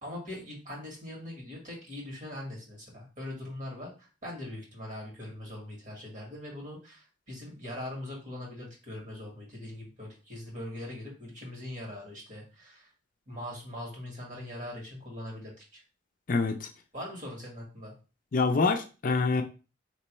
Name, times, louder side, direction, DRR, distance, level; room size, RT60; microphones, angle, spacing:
voice 1, 0.0-12.9 13.3-15.8 16.9-17.9, left 1 dB, 45° right, -2 dB, 1.8 m, -41 dB
voice 2, 16.3-16.7 18.3-19.4, left 4 dB, 50° left, 6 dB, 0.5 m, -26 dB
4.4 x 3.0 x 3.0 m, 0.33 s
head